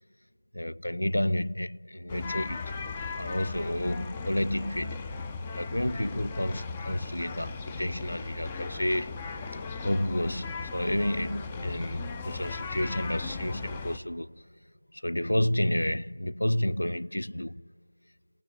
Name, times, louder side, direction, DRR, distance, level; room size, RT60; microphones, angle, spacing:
voice 1, 0.5-2.7 3.2-5.1 5.5-9.2 9.8-14.4 14.9-17.7, left 1 dB, 90° left, 0.5 m, -30 dB
sound 1, 2.1-14.0, left 4 dB, 15° left, 0.6 m, -37 dB
28.5 x 16.5 x 9.2 m
figure-of-eight pair, 170°, 0 cm